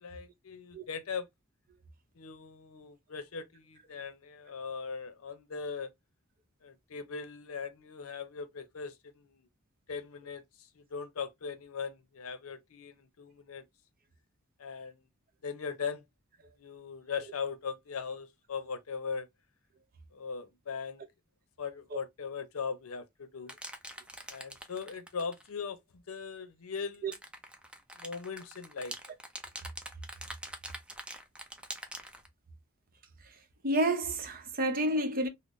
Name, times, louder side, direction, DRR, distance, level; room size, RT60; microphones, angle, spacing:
voice 1, 0.0-1.3 2.2-5.9 6.6-9.5 9.9-13.6 14.6-15.0 15.4-16.0 16.6-19.3 20.1-21.0 21.6-23.5 24.3-27.0 28.0-28.9, left 5 dB, 80° left, 0.6 m, -39 dB
sound 1, 23.5-25.5 26.9-32.3, right 1 dB, 5° right, 0.4 m, -44 dB
voice 2, 33.2-35.3, right 1 dB, 40° right, 0.7 m, -30 dB
3.8 x 2.0 x 3.0 m
head